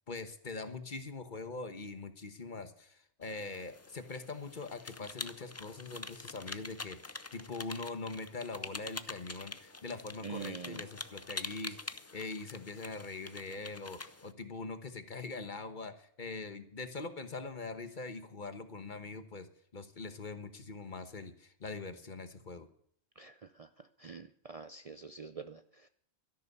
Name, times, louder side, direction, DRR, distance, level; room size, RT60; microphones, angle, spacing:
voice 1, 0.1-19.5 19.7-22.7, left 3 dB, 45° left, 9 dB, 1.3 m, -43 dB
sound 1, 3.2-14.3, left 3 dB, 20° left, 0.4 m, -46 dB
voice 2, 10.2-10.8 23.2-23.7 24.0-25.9, right 5 dB, 45° right, 10 dB, 0.5 m, -45 dB
13.0 x 11.0 x 6.8 m, 0.65 s
omnidirectional pair, 1.1 m